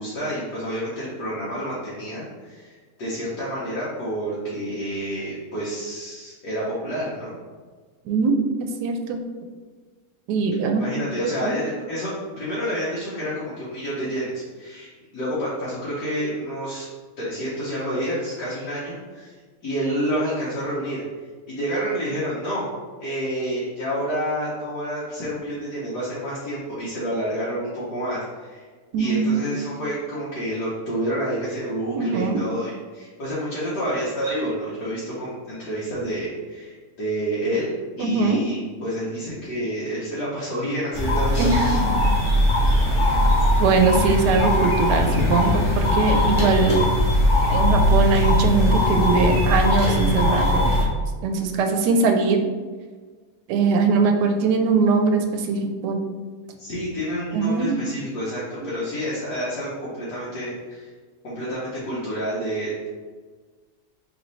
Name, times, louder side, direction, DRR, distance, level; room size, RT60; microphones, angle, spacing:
voice 1, 0.0-2.7 3.0-7.3 10.8-16.9 17.2-19.3 19.6-21.0 21.5-22.7 23.0-28.6 29.0-37.7 38.0-41.5 42.1-42.3 45.1-45.2 56.6-60.9 61.2-62.9, equal, 90° left, -9 dB, 1.6 m, -29 dB
voice 2, 8.1-8.4 8.8-9.2 10.3-10.9 11.4-11.5 28.9-29.5 31.9-32.4 38.0-38.4 41.4-41.7 43.6-46.8 47.5-50.7 51.2-52.4 53.5-56.0 57.3-57.8, right 4 dB, 90° right, 5 dB, 1.2 m, -21 dB
sound 1, 40.9-50.8, left 1 dB, 35° left, 1.0 m, -20 dB
3.6 x 3.1 x 4.0 m, 1.5 s
omnidirectional pair, 1.7 m